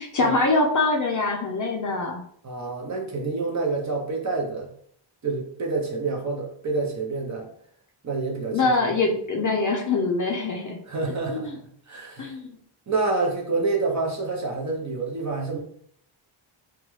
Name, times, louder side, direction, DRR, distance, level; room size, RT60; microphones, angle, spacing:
voice 1, 0.0-2.2 8.5-10.8 11.3-11.6 12.2-12.5, left 3 dB, 40° left, 1 dB, 0.4 m, -24 dB
voice 2, 2.4-4.7 5.2-7.5 8.0-8.7 10.9-11.5 11.9-12.3 12.9-15.6, right 3 dB, 35° right, 0 dB, 0.6 m, -27 dB
2.9 x 2.3 x 3.0 m, 0.63 s
wide cardioid pair, 150°, 49 cm